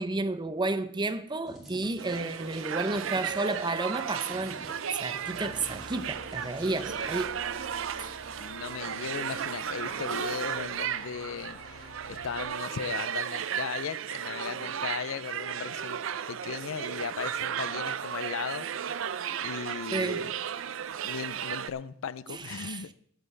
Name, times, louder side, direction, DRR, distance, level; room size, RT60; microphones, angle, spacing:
voice 1, 0.0-7.3 8.0-8.1 19.9-20.2 22.3-22.8, right 2 dB, 20° right, 0.7 m, -32 dB
sound 1, 1.5-7.1, equal, ahead, 3.1 m, -50 dB
sound 2, 2.0-21.7, right 8 dB, 70° right, 0.5 m, -35 dB
sound 3, 5.1-12.4, left 1 dB, 60° left, 1.8 m, -49 dB
voice 2, 8.4-16.0 16.3-18.7 19.4-20.3 21.0-22.9, left 6 dB, 80° left, 0.5 m, -37 dB
20.0 x 8.4 x 3.3 m
head